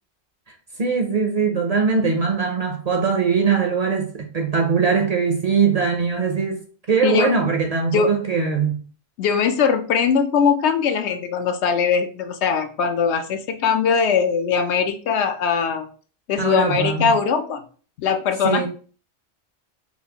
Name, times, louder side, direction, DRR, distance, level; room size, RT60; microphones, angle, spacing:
voice 1, 0.8-6.6 6.9-8.8 16.4-17.1 18.4-18.7, right 5 dB, 45° right, 0.5 m, -21 dB
voice 2, 7.0-7.3 7.9-8.1 9.2-15.9 16.3-17.6 18.0-18.7, left 6 dB, 85° left, 0.9 m, -21 dB
4.4 x 2.4 x 2.8 m
omnidirectional pair, 1.1 m